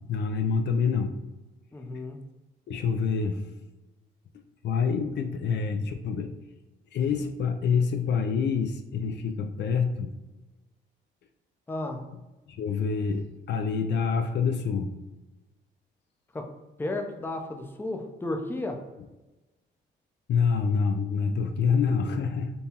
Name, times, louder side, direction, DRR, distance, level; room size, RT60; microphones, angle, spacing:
voice 1, 0.1-1.2 2.7-3.4 4.6-6.3 6.9-10.1 12.5-14.9 20.3-22.5, left 5 dB, 60° left, 6 dB, 0.4 m, -26 dB
voice 2, 1.7-2.2 11.7-12.0 16.3-16.5 16.8-18.8, left 2 dB, 10° left, 4 dB, 0.5 m, -33 dB
5.3 x 2.2 x 2.8 m, 1.1 s
cardioid pair, 90°, 20 cm